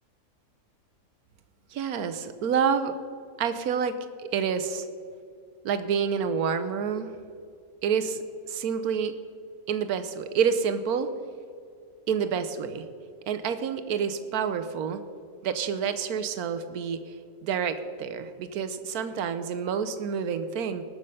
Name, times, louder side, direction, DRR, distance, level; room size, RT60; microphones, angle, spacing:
voice 1, 1.7-3.0 3.4-4.8 5.6-7.1 7.8-9.2 9.7-11.1 12.1-12.8 13.3-15.0 15.4-17.0 17.4-20.8, right 7 dB, 80° right, 10 dB, 1.3 m, -28 dB
19.5 x 6.6 x 5.5 m, 2.3 s
omnidirectional pair, 1.6 m